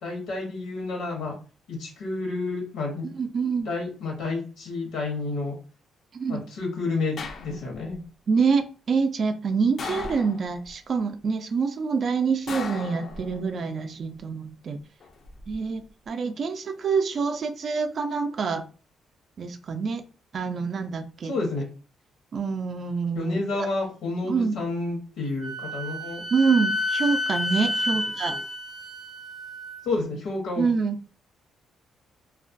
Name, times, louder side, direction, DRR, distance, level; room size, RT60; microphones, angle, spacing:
voice 1, 0.0-1.3 1.7-3.0 3.6-5.5 6.3-8.0 21.2-21.6 23.1-26.2 27.9-28.0 28.3-28.4 29.8-30.6, left 3 dB, 90° left, 0.9 m, -30 dB
voice 2, 3.1-3.7 6.1-6.4 8.3-14.8 15.5-15.8 16.1-18.6 19.4-20.0 20.3-21.3 22.3-23.7 24.3-24.5 26.3-28.4 30.6-31.0, right 5 dB, 50° right, 0.3 m, -26 dB
sound 1, 7.2-7.9 9.8-10.7 12.5-13.6 15.0-15.5, left 4 dB, 60° left, 0.4 m, -37 dB
Wind instrument woodwind instrument, 25.4-29.8, left 1 dB, 15° right, 0.6 m, -30 dB
2.3 x 2.1 x 2.5 m
cardioid pair, 90°, 0 cm